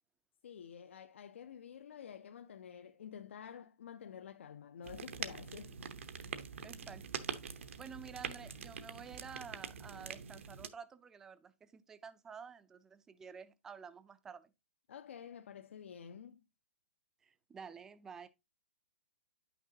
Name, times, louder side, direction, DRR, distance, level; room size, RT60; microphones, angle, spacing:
voice 1, 0.4-5.8 14.9-16.4, left 8 dB, 70° left, 0.5 m, -50 dB
sound 1, 4.8-10.7, right 6 dB, 75° right, 0.9 m, -44 dB
voice 2, 6.3-7.0 7.8-14.5 17.2-18.3, right 6 dB, 5° right, 0.3 m, -51 dB
8.9 x 6.0 x 2.7 m
hypercardioid pair, 170°, 7 cm